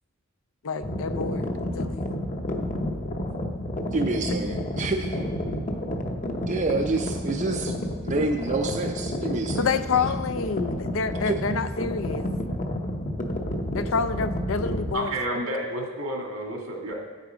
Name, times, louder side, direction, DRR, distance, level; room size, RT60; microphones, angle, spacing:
voice 1, 0.6-2.1 9.6-12.3 13.7-15.2, left 5 dB, 65° left, 11 dB, 0.5 m, -28 dB
sound 1, 0.8-14.9, left 1 dB, 35° left, 0.8 m, -30 dB
voice 2, 3.9-5.2 6.5-7.8 8.0-10.1 11.2-11.4, right 3 dB, 35° right, 4 dB, 0.5 m, -28 dB
voice 3, 14.9-16.9, right 1 dB, 80° right, 0 dB, 2.1 m, -30 dB
8.7 x 8.3 x 5.0 m, 1.4 s
head